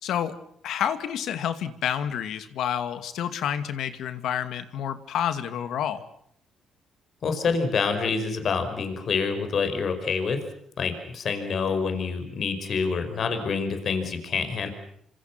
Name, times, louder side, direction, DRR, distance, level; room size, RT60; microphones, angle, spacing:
voice 1, 0.0-0.3 0.6-6.0, left 9 dB, 80° left, 11 dB, 2.3 m, -29 dB
voice 2, 7.2-10.4 10.8-14.7, left 5 dB, 55° left, 8 dB, 5.4 m, -27 dB
27.5 x 26.0 x 6.1 m, 0.68 s
cardioid pair, 90°, 0 cm